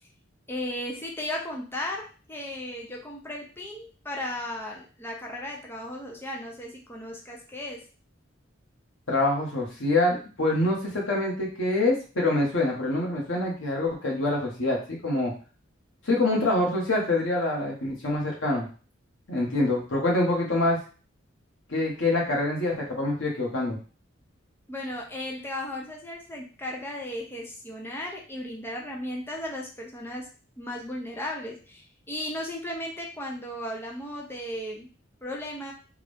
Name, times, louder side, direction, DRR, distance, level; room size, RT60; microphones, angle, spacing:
voice 1, 0.5-7.8 24.7-30.3 30.6-34.9 35.2-35.7, left 1 dB, 10° left, -1 dB, 0.6 m, -35 dB
voice 2, 9.1-15.3 16.0-18.7 19.3-20.8 21.7-23.8, left 2 dB, 90° left, -3 dB, 1.4 m, -25 dB
3.6 x 2.5 x 3.4 m, 0.36 s
head